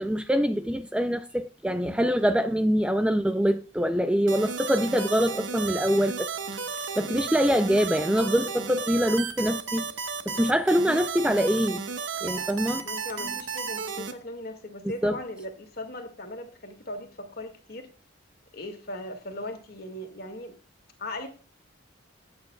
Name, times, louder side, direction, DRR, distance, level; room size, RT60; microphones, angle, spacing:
voice 1, 0.0-6.3 7.0-9.9 10.3-11.8 12.2-12.9 13.2-13.3 15.0-15.2, equal, 5° right, 0.4 m, -24 dB
sound 1, 4.3-14.1, right 5 dB, 75° right, 1.2 m, -33 dB
voice 2, 12.8-17.9 18.5-20.6 21.0-21.3, left 1 dB, 50° left, 1.9 m, -38 dB
15.0 x 9.0 x 2.3 m
head